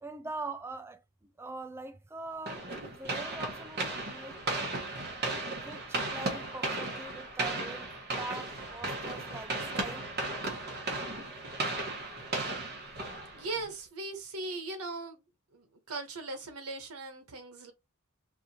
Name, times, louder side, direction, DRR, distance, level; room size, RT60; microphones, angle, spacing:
voice 1, 0.0-1.0 1.4-4.8 5.5-7.9 8.2-10.1, right 3 dB, 10° right, 0.3 m, -43 dB
sound 1, 2.5-13.7, right 2 dB, 50° right, 1.4 m, -36 dB
voice 2, 13.3-15.2 15.5-17.7, right 3 dB, 90° right, 1.1 m, -39 dB
4.9 x 2.6 x 2.9 m
head